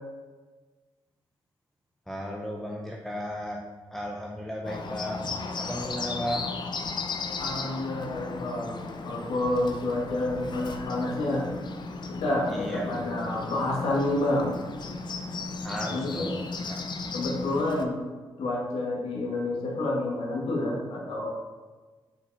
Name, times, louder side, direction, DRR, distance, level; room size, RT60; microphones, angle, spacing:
voice 1, 2.1-3.6 3.9-5.3 5.6-6.5 12.5-12.9 15.6-16.8, equal, 5° left, -2 dB, 0.8 m, -35 dB
Bird, 4.6-17.9, left 3 dB, 55° left, 0.7 m, -35 dB
voice 2, 7.4-11.5 12.1-14.5 15.9-16.4 17.1-18.0 18.4-21.3, left 2 dB, 85° left, -3 dB, 1.9 m, -29 dB
6.3 x 5.6 x 4.2 m, 1.4 s
cardioid pair, 80°, 9 cm